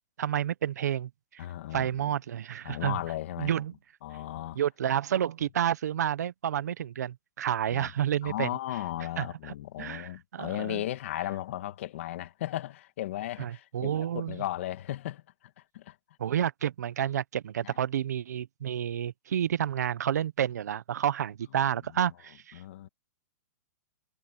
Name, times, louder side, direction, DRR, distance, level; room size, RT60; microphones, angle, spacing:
voice 1, 0.2-1.4 1.7-3.0 3.4-3.7 4.5-8.5 9.2-10.8 13.4-14.4 16.2-22.6, right 10 dB, 80° right, 1.0 m, -30 dB
voice 2, 1.4-2.2 2.6-3.5 4.0-4.6 7.7-7.9 8.2-15.2 15.7-16.0 17.6-17.8 22.0-22.1 22.5-22.9, left 14 dB, 50° left, 1.8 m, -36 dB
hypercardioid pair, 170°, 9 cm